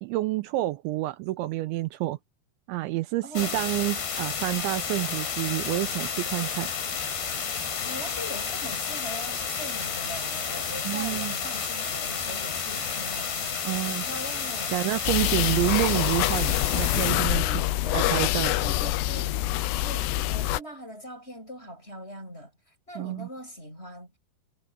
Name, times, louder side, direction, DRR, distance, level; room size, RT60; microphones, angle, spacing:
voice 1, 0.0-2.2 2.7-6.7 10.9-11.3 13.6-14.0 14.7-17.4 17.9-18.5 23.0-23.3, right 18 dB, 85° right, 2.9 m, -28 dB
voice 2, 3.2-3.6 7.8-14.8 15.2-15.5 17.3-18.2 18.6-19.4 19.7-24.2, equal, 10° left, 7.1 m, -41 dB
sound 1, 3.3-17.1, left 6 dB, 55° left, 6.3 m, -31 dB
sound 2, 15.0-20.6, left 15 dB, 80° left, 2.4 m, -25 dB
omnidirectional pair, 5.7 m